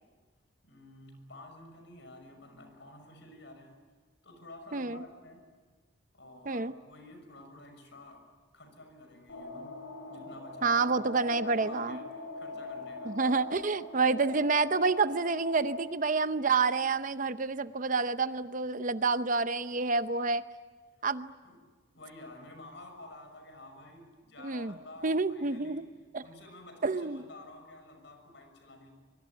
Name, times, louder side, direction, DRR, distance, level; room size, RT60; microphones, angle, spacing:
voice 1, 0.6-3.8 4.2-5.5 6.1-8.3 8.5-9.8 10.1-11.0 11.4-12.0 12.4-13.2 21.4-21.7 21.9-25.9 26.2-28.9, left 1 dB, 65° left, 6 dB, 6.2 m, -51 dB
voice 2, 4.7-5.0 6.5-6.7 10.6-12.0 13.1-20.4 21.0-21.3 24.4-24.7 25.0-25.8 26.1-26.2 26.8-27.2, right 4 dB, 40° right, 12 dB, 0.7 m, -28 dB
sound 1, 9.3-15.8, left 3 dB, 85° left, 5.8 m, -41 dB
24.0 x 23.5 x 9.6 m, 1.4 s
head